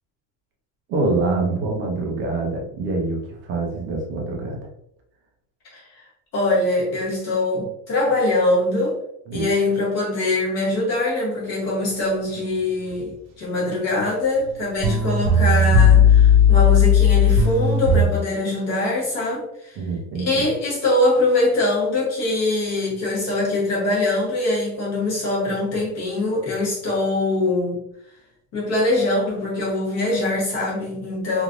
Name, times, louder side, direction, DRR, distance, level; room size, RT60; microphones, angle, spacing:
voice 1, 0.9-4.6 9.3-9.5 19.8-20.5, right 3 dB, 30° right, 0 dB, 0.4 m, -25 dB
voice 2, 5.7-6.0 6.3-9.0 9.3-19.8 20.1-27.8 28.5-31.4, left 2 dB, 35° left, -4 dB, 0.9 m, -23 dB
sound 1, 14.5-14.6 14.8-18.0, left 5 dB, 65° right, 0.7 m, -15 dB
3.1 x 2.5 x 2.3 m, 0.74 s
cardioid pair, 170°, 47 cm